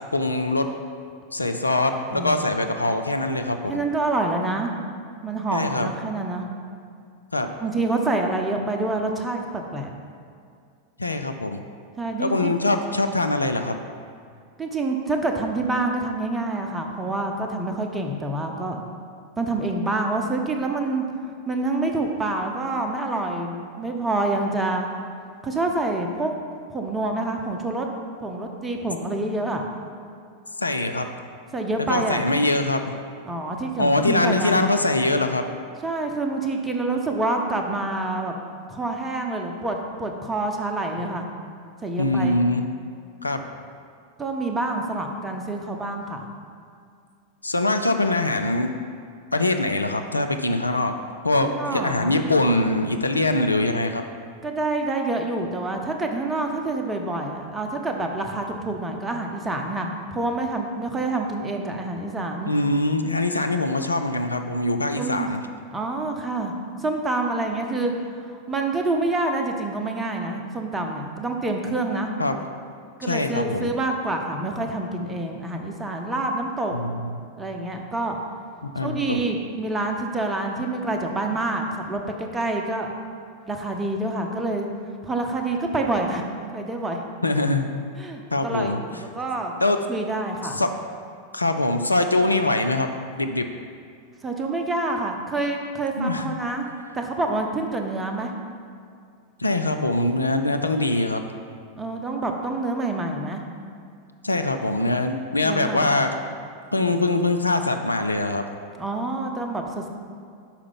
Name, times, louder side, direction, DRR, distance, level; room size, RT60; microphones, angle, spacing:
voice 1, 0.1-0.7 1.3-3.8 5.5-5.9 7.3-7.5 11.0-11.6 12.2-13.8 30.6-31.1 31.9-32.9 33.8-35.4 42.0-42.6 43.2-43.4 47.4-48.7 49.3-50.9 51.2-54.0 62.5-65.4 72.2-72.4 73.0-73.7 76.7-77.1 78.6-79.2 87.2-87.7 88.3-88.8 89.6-89.8 90.5-90.7 91.3-92.9 93.2-93.5 96.0-96.4 99.4-101.2 104.2-106.1 106.7-108.4, left 2 dB, 80° left, 6 dB, 0.4 m, -23 dB
voice 2, 2.1-2.5 3.7-4.7 5.2-6.5 7.6-9.9 12.0-12.5 14.6-18.8 19.4-21.0 21.5-24.9 25.4-26.3 26.7-27.9 28.2-29.6 31.5-32.2 33.2-34.7 35.8-38.3 38.7-41.2 41.8-42.4 44.2-46.2 51.4-52.2 54.4-62.5 65.0-65.3 65.7-66.5 66.8-67.9 68.2-72.1 73.0-76.7 77.4-78.2 78.8-82.9 83.5-84.7 85.0-87.0 88.0-89.5 89.9-90.7 94.2-96.7 96.9-98.3 101.8-103.4 105.4-106.0 108.8-109.9, right 2 dB, 15° right, 2 dB, 0.7 m, -27 dB
5.7 x 4.8 x 5.5 m, 2.3 s
figure-of-eight pair, 90°, 0 cm